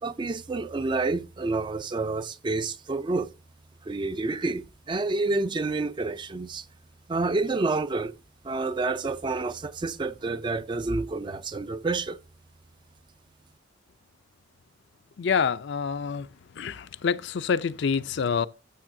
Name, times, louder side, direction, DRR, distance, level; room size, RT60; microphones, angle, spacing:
voice 1, 0.0-3.3 3.8-6.7 7.1-8.2 8.4-12.2, right 3 dB, 25° right, 0.3 m, -29 dB
voice 2, 15.2-16.3 16.5-18.5, left 6 dB, 60° left, 0.4 m, -27 dB
13.5 x 6.5 x 2.6 m
head